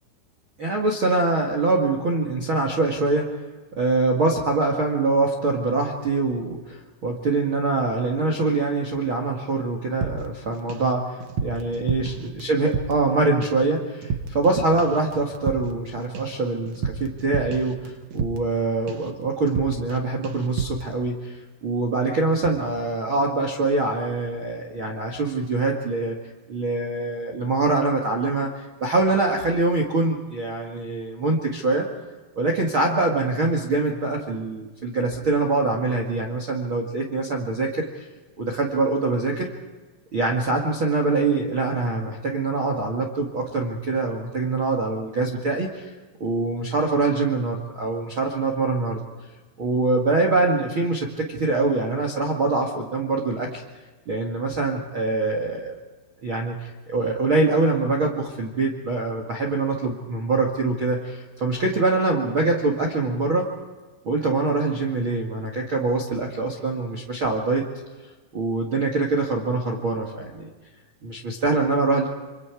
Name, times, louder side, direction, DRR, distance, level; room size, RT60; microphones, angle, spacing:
voice 1, 0.6-3.3 3.7-26.2 26.5-31.8 32.3-38.1 38.4-39.5 40.1-45.9 46.2-49.0 49.6-53.6 54.0-55.7 56.2-63.5 64.0-67.6 68.3-70.5 71.0-72.1, right 3 dB, 50° right, 2 dB, 1.5 m, -24 dB
sound 1, 10.0-10.9 11.2-13.1 13.4-13.7 14.0-14.5 14.8-18.6 18.9-19.2 19.5-20.0 20.2-20.9, right 5 dB, 80° right, 1.5 m, -31 dB
27.0 x 26.5 x 4.8 m, 1.3 s
omnidirectional pair, 5.6 m